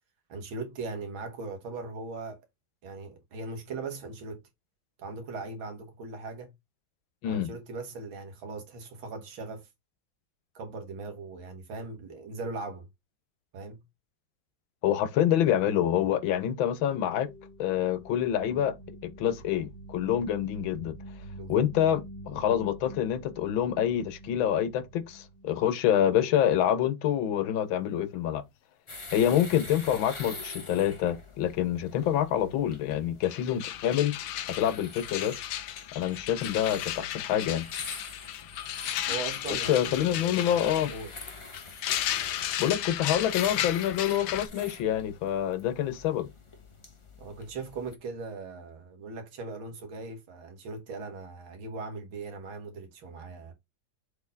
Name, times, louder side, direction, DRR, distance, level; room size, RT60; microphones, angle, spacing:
voice 1, 0.3-2.4 2.8-4.4 5.0-6.5 7.2-9.7 10.5-12.9 13.5-13.8 21.4-21.6 39.1-40.6 40.9-41.1 47.2-53.5, right 3 dB, 85° right, 2.4 m, -39 dB
voice 2, 14.8-17.3 17.6-18.7 19.0-21.0 21.5-28.4 29.1-34.1 34.5-35.3 35.9-37.6 39.7-40.9 42.6-46.3, left 10 dB, 85° left, 1.6 m, -27 dB
sound 1, 16.6-25.9 26.2-26.5, right 1 dB, 45° right, 2.2 m, -46 dB
sound 2, 28.9-48.0, left 3 dB, 20° left, 1.0 m, -46 dB
sound 3, 32.9-33.0 33.2-44.5, left 12 dB, 70° left, 1.1 m, -34 dB
7.1 x 4.2 x 3.9 m
omnidirectional pair, 2.1 m